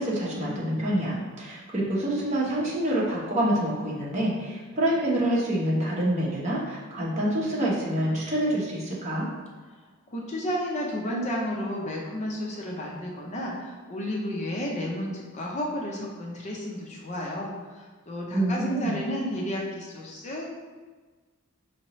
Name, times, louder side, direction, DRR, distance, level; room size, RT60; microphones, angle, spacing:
voice 1, 0.0-9.3 18.3-19.0, right 1 dB, 35° right, -5 dB, 1.0 m, -27 dB
voice 2, 10.1-20.5, equal, 35° left, -3 dB, 0.6 m, -32 dB
5.5 x 2.9 x 3.1 m, 1.4 s
head